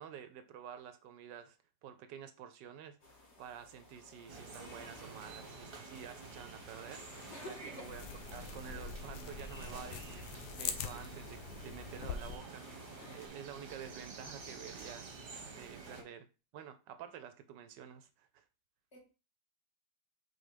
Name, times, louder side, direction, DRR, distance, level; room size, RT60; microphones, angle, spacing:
voice 1, 0.0-7.1 7.4-8.0 8.3-12.8 13.1-15.1 15.6-16.3 16.5-18.4, right 8 dB, 75° right, 1.2 m, -50 dB
sound 1, 3.0-13.3, left 2 dB, 60° left, 3.0 m, -56 dB
sound 2, 4.3-16.0, right 4 dB, 35° right, 1.0 m, -50 dB
voice 2, 7.3-8.0 13.0-13.3 16.0-16.1 18.9-19.0, left 2 dB, 35° left, 1.9 m, -49 dB
sound 3, 7.8-12.4, left 7 dB, 90° left, 1.4 m, -43 dB
5.4 x 4.2 x 4.9 m
omnidirectional pair, 2.0 m